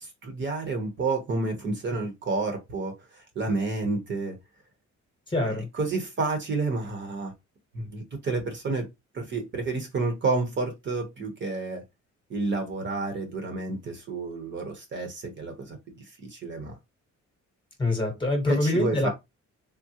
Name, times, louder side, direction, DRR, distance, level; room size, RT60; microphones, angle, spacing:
voice 1, 0.0-4.4 5.5-7.3 7.7-8.9 9.1-11.8 12.3-16.7 18.5-19.1, right 3 dB, 40° right, 0.8 m, -30 dB
voice 2, 5.3-5.7 17.8-19.1, left 2 dB, 15° left, 0.9 m, -25 dB
3.7 x 2.0 x 2.7 m
cardioid pair, 160°, 29 cm